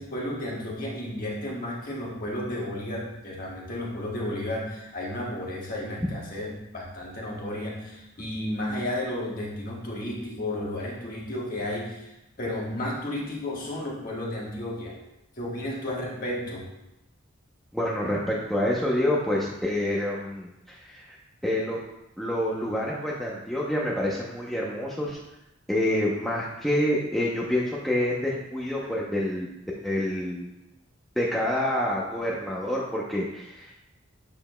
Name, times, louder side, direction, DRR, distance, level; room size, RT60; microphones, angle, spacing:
voice 1, 0.0-12.1 12.4-15.0 15.4-16.7, left 1 dB, 40° left, -4 dB, 1.5 m, -33 dB
voice 2, 17.7-21.2 21.4-21.8 22.2-25.2 25.7-29.5 29.8-30.5 31.2-33.7, left 1 dB, ahead, -5 dB, 0.7 m, -27 dB
7.8 x 6.9 x 2.2 m, 0.88 s
head